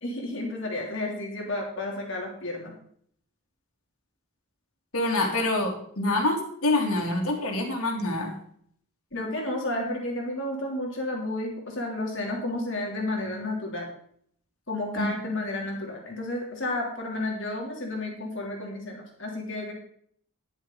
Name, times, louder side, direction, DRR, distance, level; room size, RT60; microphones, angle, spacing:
voice 1, 0.0-2.7 9.1-13.9 14.7-19.7, left 2 dB, 55° left, 0 dB, 3.2 m, -31 dB
voice 2, 4.9-8.3 15.0-15.1, left 2 dB, 75° left, 1 dB, 2.9 m, -26 dB
13.5 x 10.5 x 4.0 m, 0.63 s
head